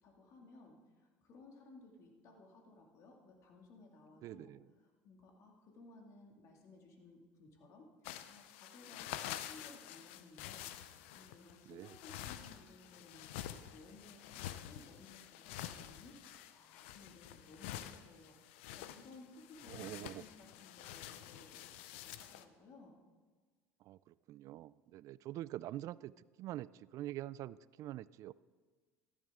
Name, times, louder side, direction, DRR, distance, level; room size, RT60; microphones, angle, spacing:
voice 1, 0.0-4.5 5.0-21.6 21.9-23.0, left 3 dB, 55° left, 1 dB, 2.3 m, -59 dB
voice 2, 4.2-4.7 11.6-12.0 19.7-20.2 23.8-28.3, right 14 dB, 55° right, 20 dB, 0.3 m, -45 dB
sound 1, 8.0-22.4, left 12 dB, 80° left, 0.6 m, -48 dB
14.0 x 12.0 x 3.7 m, 1.4 s
supercardioid pair, 90°, 6 cm